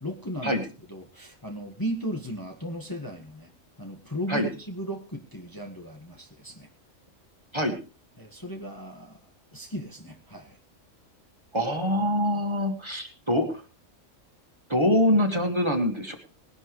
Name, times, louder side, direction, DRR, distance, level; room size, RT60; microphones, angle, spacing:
voice 1, 0.0-3.5 3.8-6.7 8.2-9.2 9.5-10.6, equal, 15° left, 1 dB, 1.7 m, -36 dB
voice 2, 11.5-13.6 14.7-16.2, left 1 dB, 20° right, 3 dB, 2.1 m, -24 dB
20.5 x 11.5 x 3.3 m, 0.33 s
omnidirectional pair, 1.3 m